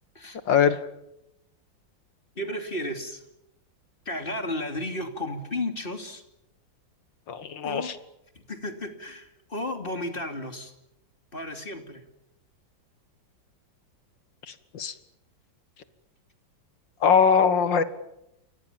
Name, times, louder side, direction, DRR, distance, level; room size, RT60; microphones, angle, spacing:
voice 1, 0.5-0.8 7.3-7.9 14.7-14.9 17.0-17.8, left 7 dB, 75° left, 12 dB, 2.3 m, -21 dB
voice 2, 2.4-3.2 4.0-6.2 7.6-7.9 8.3-10.7 11.3-12.0, left 1 dB, 30° left, 6 dB, 3.0 m, -33 dB
29.0 x 23.0 x 7.3 m, 0.85 s
omnidirectional pair, 2.1 m